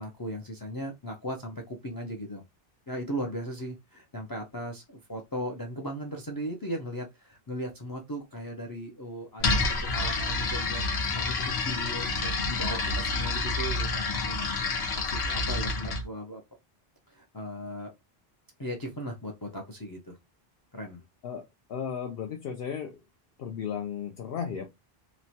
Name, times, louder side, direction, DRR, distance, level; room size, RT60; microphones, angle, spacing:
voice 1, 0.0-2.4 2.9-10.8 11.1-11.3 11.6-14.5 15.1-16.4 17.1-17.9 18.6-20.2 20.7-21.0, equal, 35° left, 2 dB, 0.4 m, -37 dB
sound 1, 9.4-16.0, left 3 dB, 90° left, 1.0 m, -28 dB
voice 2, 21.7-23.0 23.4-24.7, left 7 dB, 70° left, 2 dB, 0.7 m, -34 dB
3.0 x 2.1 x 2.7 m, 0.20 s
omnidirectional pair, 1.1 m